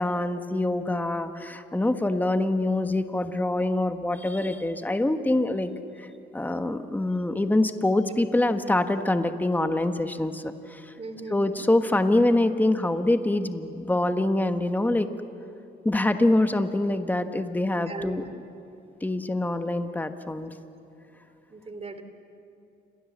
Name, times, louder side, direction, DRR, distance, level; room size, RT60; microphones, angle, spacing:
voice 1, 0.0-5.7 6.0-6.1 6.3-10.9 11.3-15.1 15.8-18.2 19.0-20.5, left 2 dB, 10° left, 8 dB, 1.3 m, -25 dB
voice 2, 11.0-11.6 17.9-18.3 21.5-22.0, right 3 dB, 30° right, 9 dB, 2.9 m, -38 dB
28.5 x 23.0 x 7.4 m, 2.7 s
cardioid pair, 90°, 20 cm